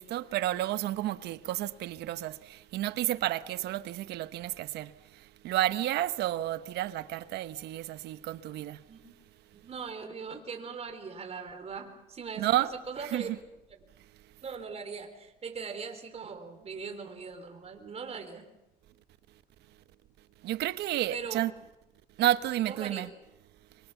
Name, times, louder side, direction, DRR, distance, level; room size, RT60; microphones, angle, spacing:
voice 1, 0.0-8.8 12.4-12.7 13.1-13.4 20.4-21.5 22.2-23.1, right 14 dB, 80° right, 1.0 m, -31 dB
voice 2, 9.5-12.6 12.9-13.3 14.4-18.5 21.1-21.4 22.7-23.1, right 5 dB, 35° right, 4.1 m, -40 dB
24.5 x 24.0 x 7.1 m
cardioid pair, 110°, 17 cm